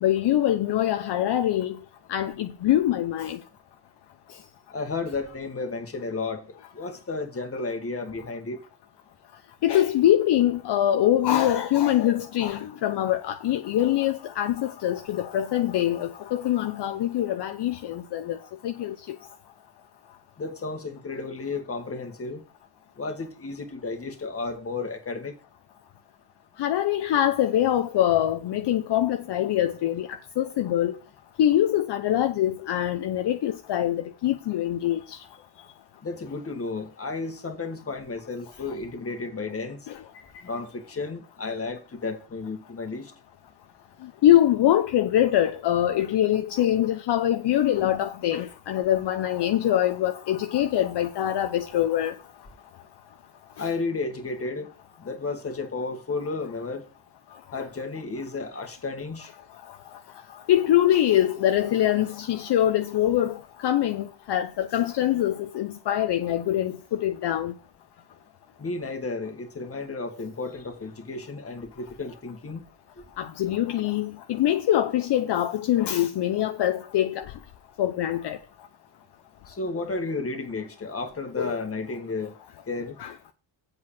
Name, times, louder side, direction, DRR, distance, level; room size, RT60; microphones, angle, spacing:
voice 1, 0.0-1.8 2.1-3.4 9.6-18.4 18.6-19.2 26.6-30.1 30.4-30.9 31.4-35.0 44.2-52.1 60.5-63.4 63.6-67.5 73.2-77.2 77.8-78.4 81.4-81.6 83.0-83.1, left 12 dB, 55° left, 0.8 m, -23 dB
voice 2, 4.7-6.5 6.7-8.6 20.4-22.4 23.0-25.4 36.0-39.8 40.4-43.1 53.6-54.7 55.0-56.8 57.5-59.3 68.6-72.6 79.5-82.4 82.7-83.0, left 3 dB, 30° left, 1.8 m, -33 dB
8.0 x 4.8 x 7.3 m
supercardioid pair, 75°, 49 cm